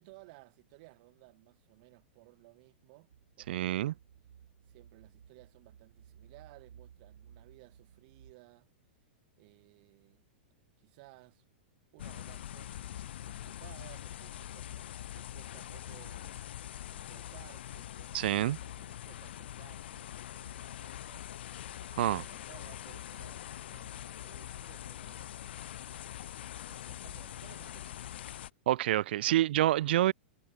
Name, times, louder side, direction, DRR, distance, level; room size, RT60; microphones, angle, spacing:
voice 1, 0.0-3.1 3.4-4.0 4.7-8.7 9.4-10.2 10.8-11.4 11.9-16.5 16.9-25.4 26.0-26.2 26.7-28.0, right 27 dB, 50° right, 7.0 m, -58 dB
sound 1, 3.1-8.3, right 8 dB, 85° right, 5.1 m, -58 dB
voice 2, 3.5-3.9 18.1-18.6 22.0-22.2 28.7-30.1, right 14 dB, 65° right, 0.8 m, -27 dB
sound 2, 12.0-28.5, left 12 dB, 75° left, 3.4 m, -44 dB
hypercardioid pair, 130°, 6 cm